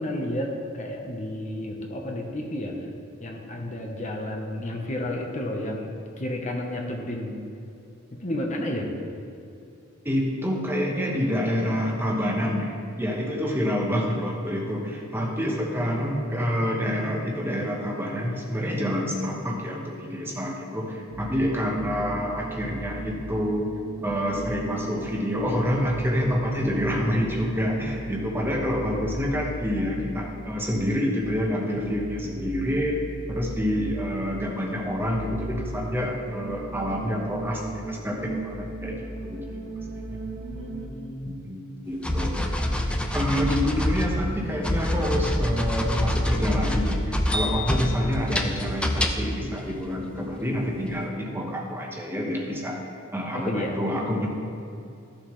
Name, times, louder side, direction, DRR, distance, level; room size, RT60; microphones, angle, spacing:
voice 1, 0.0-2.8 3.2-7.4 8.1-8.9 28.8-29.3 40.5-41.5 44.2-44.6 53.3-53.7, left 1 dB, 40° left, 1 dB, 0.9 m, -32 dB
voice 2, 10.0-23.7 24.0-39.6 40.1-40.2 41.2-52.8 53.1-54.3, equal, 10° right, -1 dB, 1.1 m, -27 dB
sound 1, 21.1-40.9, right 2 dB, 40° right, 0.9 m, -37 dB
sound 2, 42.0-49.4, left 1 dB, 5° left, 0.6 m, -26 dB
13.5 x 7.1 x 3.2 m, 2.6 s
head